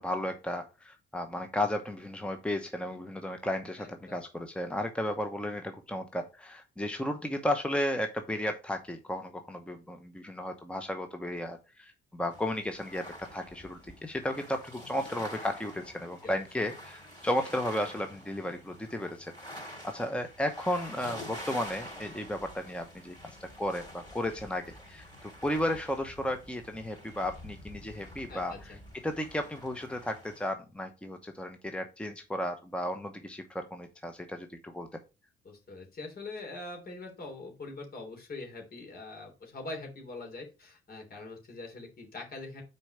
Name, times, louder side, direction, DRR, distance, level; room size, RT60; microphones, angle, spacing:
voice 1, 0.0-13.0 13.3-23.1 23.4-24.6 24.9-28.7 29.0-34.9, left 1 dB, 5° left, 6 dB, 0.9 m, -34 dB
voice 2, 3.8-4.2 16.2-16.7 28.3-28.8 35.4-42.6, left 2 dB, 50° left, 3 dB, 3.1 m, -43 dB
sound 1, 12.3-30.5, equal, 20° left, 4.1 m, -47 dB
6.1 x 4.6 x 5.0 m, 0.29 s
cardioid pair, 90°, 20 cm